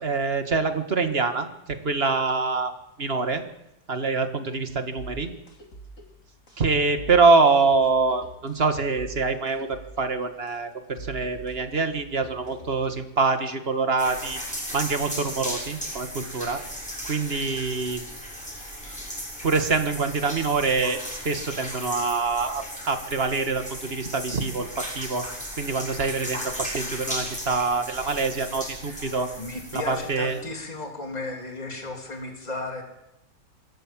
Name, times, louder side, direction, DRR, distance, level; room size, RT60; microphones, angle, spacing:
voice 1, 0.0-2.7 3.0-3.4 3.9-5.3 6.6-14.4 14.7-16.6 17.0-18.0 19.4-25.2 25.6-29.3 29.7-30.4, right 4 dB, 35° right, 7 dB, 1.9 m, -25 dB
sound 1, 5.0-13.0, right 2 dB, 45° left, 3.0 m, -44 dB
sound 2, 14.0-30.4, equal, 5° left, 6.6 m, -36 dB
voice 2, 29.4-32.8, left 2 dB, 20° left, 2 dB, 3.3 m, -34 dB
26.0 x 13.5 x 7.5 m, 0.88 s
omnidirectional pair, 2.0 m